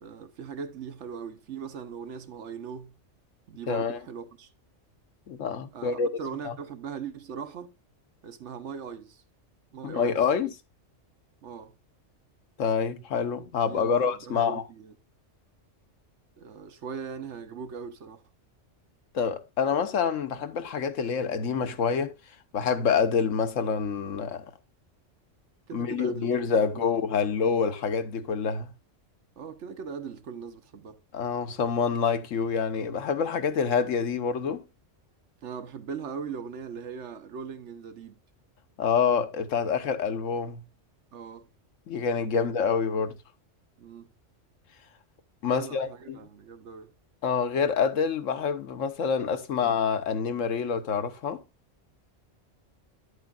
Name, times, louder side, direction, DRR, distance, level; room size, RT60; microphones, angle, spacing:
voice 1, 0.0-2.9 3.5-4.5 5.7-7.7 8.2-9.2 9.7-10.1 11.4-11.7 13.7-14.9 16.4-18.2 25.7-26.9 29.4-31.0 35.4-38.2 41.1-41.5 42.1-42.5 43.8-44.1 45.4-46.9, right 6 dB, 70° right, 1.2 m, -40 dB
voice 2, 3.7-4.0 5.3-6.1 6.4-6.5 9.8-10.6 12.6-14.6 19.1-22.1 22.5-24.5 25.7-28.7 31.1-34.6 38.8-40.6 41.9-43.2 45.4-46.2 47.2-51.4, left 6 dB, 80° left, 1.3 m, -27 dB
10.5 x 8.0 x 2.3 m
omnidirectional pair, 1.3 m